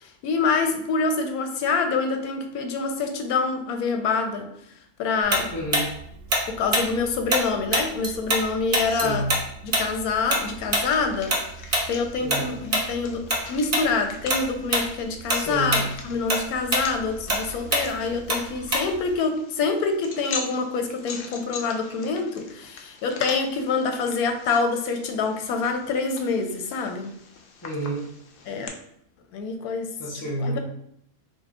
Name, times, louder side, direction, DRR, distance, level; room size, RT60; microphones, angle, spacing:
voice 1, 0.0-4.5 5.0-5.5 6.5-9.2 9.6-11.4 11.9-27.1 28.5-28.8 29.3-29.9 30.4-30.6, left 4 dB, 85° left, 5 dB, 1.1 m, -26 dB
Tick-tock, 5.3-8.5 8.7-13.4 13.7-13.9 14.3-14.9 15.2-19.1, right 1 dB, 40° right, 0.6 m, -24 dB
voice 2, 5.5-5.9 8.8-9.3 12.2-12.5 15.3-15.8 27.6-28.1 30.0-30.6, right 1 dB, 30° left, -4 dB, 0.3 m, -29 dB
sound 1, 9.7-28.7, left 4 dB, 70° left, 0.9 m, -42 dB
4.1 x 2.1 x 3.5 m, 0.72 s
omnidirectional pair, 1.5 m